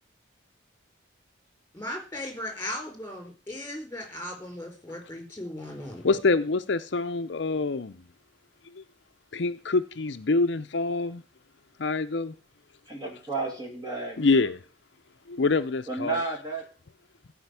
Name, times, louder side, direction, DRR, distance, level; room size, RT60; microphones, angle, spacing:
voice 1, 1.7-6.0, left 1 dB, 10° left, 4.3 m, -37 dB
voice 2, 6.0-8.0 8.7-8.8 9.3-11.2 11.8-12.3 14.2-14.6 15.3-16.2, left 3 dB, 65° left, 0.6 m, -25 dB
voice 3, 12.9-14.5 15.9-16.7, right 3 dB, 20° right, 2.5 m, -32 dB
15.5 x 5.2 x 8.2 m
head